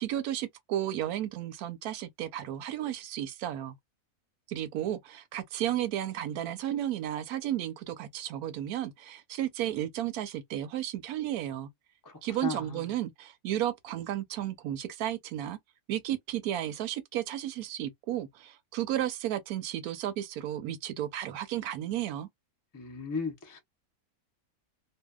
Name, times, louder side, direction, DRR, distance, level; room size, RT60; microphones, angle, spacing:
voice 1, 0.0-3.7 4.5-11.7 12.2-15.6 15.9-22.3, right 12 dB, 80° right, 1.1 m, -33 dB
voice 2, 12.0-12.9 22.7-23.6, left 4 dB, 30° left, 0.3 m, -36 dB
2.7 x 2.2 x 2.2 m
omnidirectional pair, 1.6 m